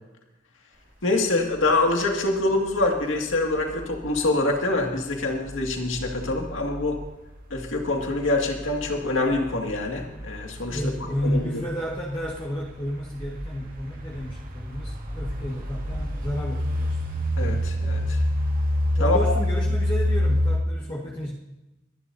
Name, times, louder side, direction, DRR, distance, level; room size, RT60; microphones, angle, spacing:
voice 1, 1.0-7.0 7.5-10.8 11.2-11.4 17.4-18.2 19.0-19.2, left 2 dB, 90° left, 1 dB, 2.1 m, -25 dB
sound 1, 1.5-20.6, left 1 dB, 45° right, 2.3 m, -29 dB
voice 2, 10.7-17.0 19.0-21.3, equal, 25° left, -4 dB, 1.5 m, -31 dB
23.0 x 11.5 x 2.7 m, 0.98 s
head